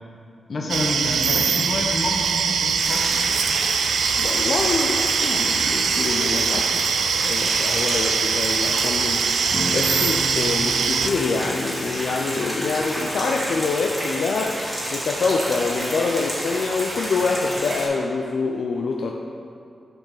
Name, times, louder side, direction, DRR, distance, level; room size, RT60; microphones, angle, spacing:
voice 1, 0.5-3.4, left 2 dB, 45° left, 0 dB, 1.0 m, -28 dB
sound 1, 0.7-11.1, right 6 dB, 90° right, 0.3 m, -22 dB
sound 2, 2.8-17.9, equal, 10° right, 1.8 m, -30 dB
voice 2, 4.2-9.2 9.7-14.6 14.9-19.1, left 4 dB, 75° left, 1 dB, 0.4 m, -25 dB
Acoustic guitar / Strum, 9.5-15.5, right 1 dB, 20° left, 1.1 m, -35 dB
6.5 x 6.2 x 3.9 m, 2.4 s
wide cardioid pair, 125°, 0 cm